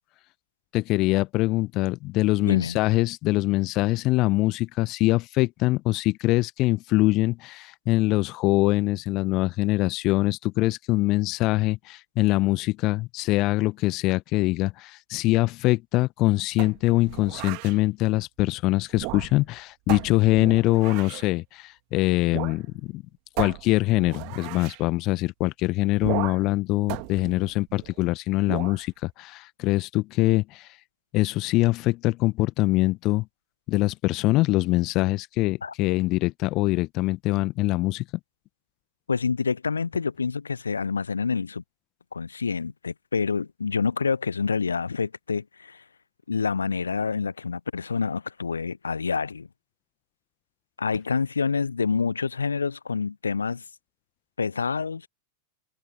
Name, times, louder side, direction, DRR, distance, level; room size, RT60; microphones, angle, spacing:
voice 1, 0.7-23.0 23.4-30.7 31.1-33.2 33.7-38.0, left 19 dB, 40° left, 1.4 m, -23 dB
voice 2, 2.4-2.8 35.6-35.7 39.1-41.6 42.1-45.8 46.3-49.5 50.8-53.6 54.4-55.1, left 5 dB, 75° left, 1.0 m, -27 dB
sound 1, 16.6-17.8 18.9-19.5 19.9-21.3 22.3-22.6 22.9-23.0 23.4-24.8 26.0-26.5 26.9-28.0 28.4-28.8, right 40 dB or more, 45° right, 2.3 m, -35 dB
figure-of-eight pair, 90°, 0 cm